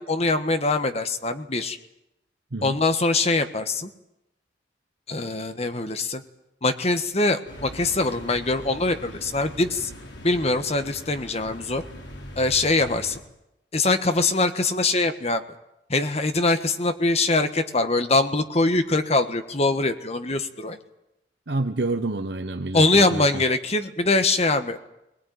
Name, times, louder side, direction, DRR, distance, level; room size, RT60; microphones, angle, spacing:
voice 1, 0.0-1.8 2.6-3.9 5.1-6.2 6.6-9.9 10.2-11.8 12.4-13.2 13.7-15.4 15.9-20.8 22.7-24.8, left 2 dB, 35° left, 9 dB, 1.5 m, -23 dB
sound 1, 7.5-13.2, equal, 80° left, 4.1 m, -41 dB
voice 2, 21.5-23.4, right 2 dB, 65° right, 7 dB, 1.0 m, -28 dB
21.0 x 20.5 x 9.5 m, 0.88 s
head